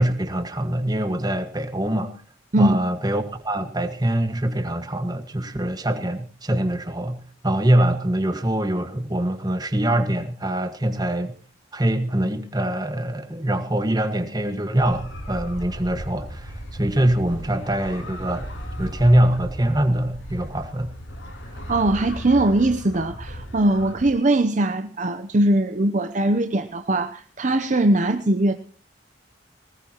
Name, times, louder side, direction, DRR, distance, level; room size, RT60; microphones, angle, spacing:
voice 1, 0.0-2.2 2.6-11.3 11.7-18.5 18.8-20.9, right 1 dB, 20° right, 1.5 m, -23 dB
sound 1, 14.8-24.1, equal, 80° left, 7.1 m, -36 dB
voice 2, 21.7-28.5, right 1 dB, 40° right, 0.7 m, -21 dB
20.5 x 19.0 x 2.9 m
head